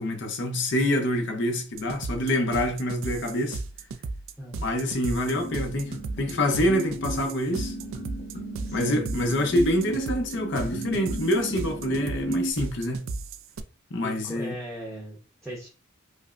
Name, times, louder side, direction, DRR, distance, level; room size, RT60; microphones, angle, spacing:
voice 1, 0.0-3.6 4.6-7.7 8.7-13.1 13.9-14.5, left 1 dB, 60° left, 0.7 m, -26 dB
sound 1, 1.7-13.6, right 3 dB, 80° right, 0.4 m, -35 dB
sound 2, 5.3-12.5, right 1 dB, 35° left, 0.9 m, -34 dB
voice 2, 8.6-9.0 14.0-15.7, equal, ahead, 0.8 m, -38 dB
5.1 x 2.1 x 2.4 m
head